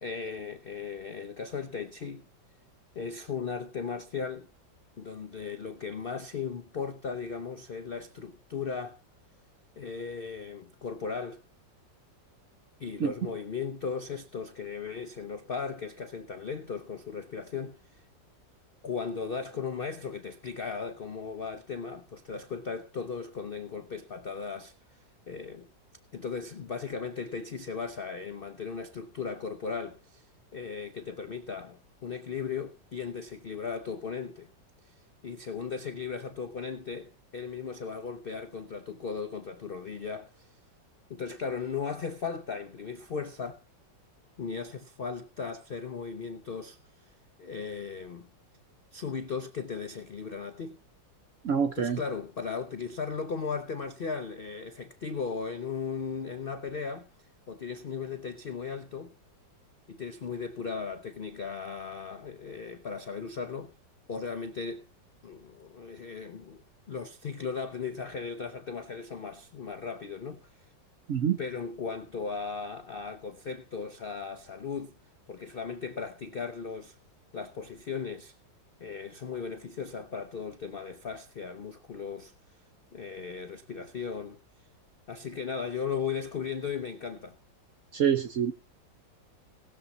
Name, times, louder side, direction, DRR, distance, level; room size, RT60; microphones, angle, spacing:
voice 1, 0.0-2.3 2.9-4.5 5.0-9.0 9.8-11.4 12.8-18.0 18.8-24.7 25.3-25.7 26.1-34.5 34.8-34.9 35.2-40.6 41.1-43.6 44.4-48.3 48.9-50.8 51.7-57.1 57.5-59.1 59.9-63.7 64.1-64.9 65.2-70.6 71.4-74.9 75.3-77.0 77.3-78.3 78.8-82.3 82.9-84.4 85.1-87.4, left 5 dB, 80° left, 0.5 m, -37 dB
voice 2, 51.4-52.0 71.1-71.4 87.9-88.5, right 8 dB, 65° right, 0.8 m, -26 dB
18.5 x 7.1 x 4.0 m
omnidirectional pair, 2.0 m